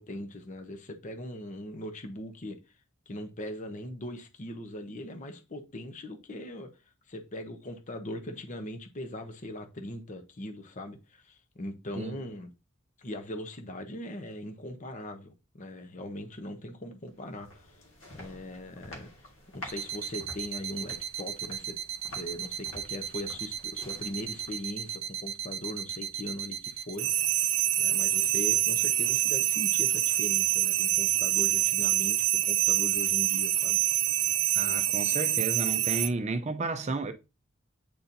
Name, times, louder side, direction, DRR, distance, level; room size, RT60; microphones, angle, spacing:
voice 1, 0.0-2.6 3.1-6.7 7.1-12.5 13.0-17.7 18.1-19.1 19.5-21.8 22.1-27.2 27.8-33.8, left 1 dB, 40° left, 0.8 m, -40 dB
sound 1, 17.1-24.9, left 1 dB, 70° left, 1.8 m, -49 dB
sound 2, 19.7-36.1, right 12 dB, 80° right, 0.7 m, -27 dB
voice 2, 34.5-37.1, right 3 dB, 35° right, 0.5 m, -32 dB
8.5 x 4.2 x 2.6 m
head